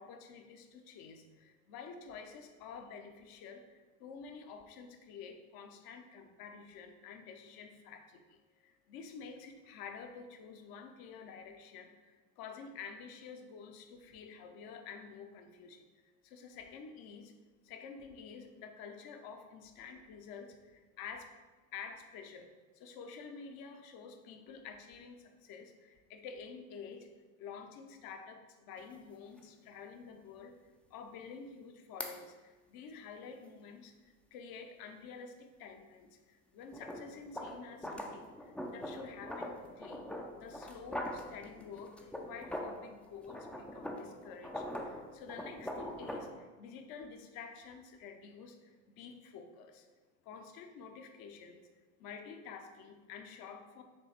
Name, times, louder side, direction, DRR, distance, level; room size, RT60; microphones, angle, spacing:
voice 1, 0.0-15.8 16.2-17.3 17.6-21.4 21.7-27.1 27.4-40.1 40.4-49.9 50.2-51.7 52.0-53.8, left 5 dB, 50° left, 5 dB, 0.9 m, -49 dB
sound 1, 28.8-28.9 29.4-29.5 32.0-32.2 36.7-42.9 43.2-46.3, equal, 5° left, 0.5 m, -42 dB
6.9 x 3.2 x 4.4 m, 1.3 s
hypercardioid pair, 75°, 47 cm